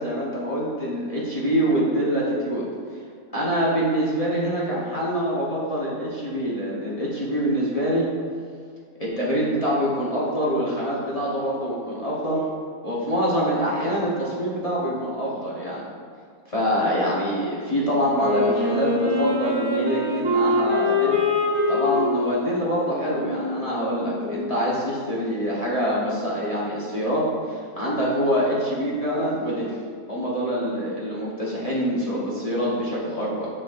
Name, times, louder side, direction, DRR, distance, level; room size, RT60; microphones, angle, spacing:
voice 1, 0.0-2.6 3.3-8.1 9.0-12.5 12.8-15.8 16.5-21.2 21.7-29.8 30.1-33.5, equal, 25° left, -7 dB, 1.0 m, -25 dB
Wind instrument woodwind instrument, 18.1-24.7, left 2 dB, 15° right, 1.2 m, -25 dB
6.7 x 6.3 x 2.5 m, 2.1 s
omnidirectional pair, 1.7 m